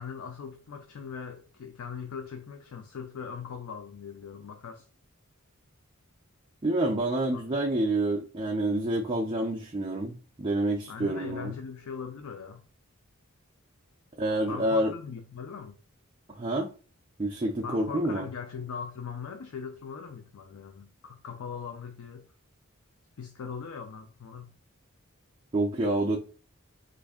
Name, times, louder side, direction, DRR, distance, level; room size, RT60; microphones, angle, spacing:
voice 1, 0.0-4.9 7.3-7.8 10.9-12.6 14.5-15.8 17.6-22.3 23.2-24.5, left 6 dB, 75° left, 0.4 m, -40 dB
voice 2, 6.6-11.5 14.2-14.9 16.3-16.7 17.2-18.3 25.5-26.2, right 1 dB, 25° right, 0.4 m, -28 dB
3.1 x 2.5 x 3.5 m
head